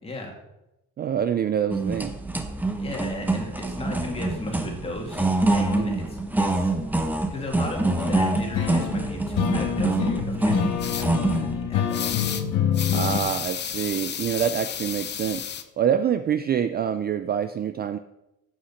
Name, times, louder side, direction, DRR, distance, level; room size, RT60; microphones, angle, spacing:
voice 1, 0.0-0.4 2.8-6.7 7.3-12.2, left 2 dB, 20° left, 1 dB, 2.5 m, -36 dB
voice 2, 1.0-2.2 5.8-6.0 12.9-15.5 15.8-18.0, right 9 dB, 30° right, 10 dB, 0.4 m, -26 dB
sound 1, 1.7-11.6, right 2 dB, 5° right, 0.9 m, -26 dB
sound 2, 7.9-13.2, left 9 dB, 85° left, 1.6 m, -27 dB
sound 3, 10.8-11.1 11.9-12.4 12.7-15.6, left 9 dB, 35° left, 0.7 m, -32 dB
13.0 x 8.7 x 5.8 m, 0.93 s
cardioid pair, 170°, 32 cm